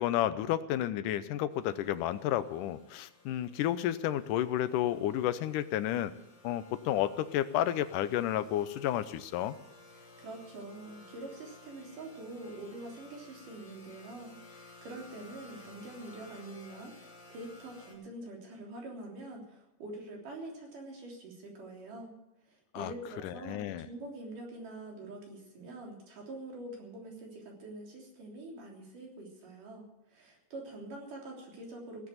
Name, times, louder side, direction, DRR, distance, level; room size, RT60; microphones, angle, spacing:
voice 1, 0.0-6.1 6.4-9.6 22.7-22.9 23.2-23.9, left 12 dB, 90° left, 13 dB, 2.3 m, -31 dB
sound 1, 1.5-17.9, left 2 dB, 35° left, 4.8 m, -56 dB
voice 2, 9.9-22.1 22.5-32.1, right 2 dB, 85° right, -1 dB, 5.0 m, -45 dB
17.0 x 8.3 x 9.2 m, 0.89 s
omnidirectional pair, 3.6 m